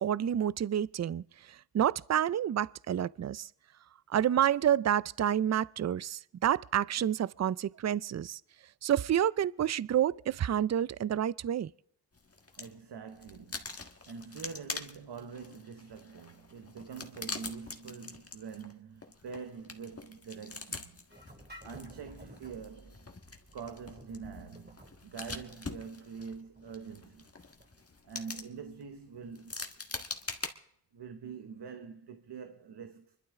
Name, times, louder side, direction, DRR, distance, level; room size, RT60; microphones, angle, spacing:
voice 1, 0.0-3.5 4.1-8.4 8.8-11.7, right 10 dB, 45° right, 0.4 m, -29 dB
sound 1, 12.1-12.8 13.1-30.5, left 3 dB, 35° left, 1.7 m, -44 dB
voice 2, 12.6-21.0 21.6-23.1 23.5-27.3 28.0-29.5 30.9-33.2, right 6 dB, 90° right, 1.0 m, -45 dB
sound 2, 21.1-27.9, right 1 dB, 25° right, 2.9 m, -54 dB
24.5 x 12.0 x 3.6 m
cardioid pair, 45°, 39 cm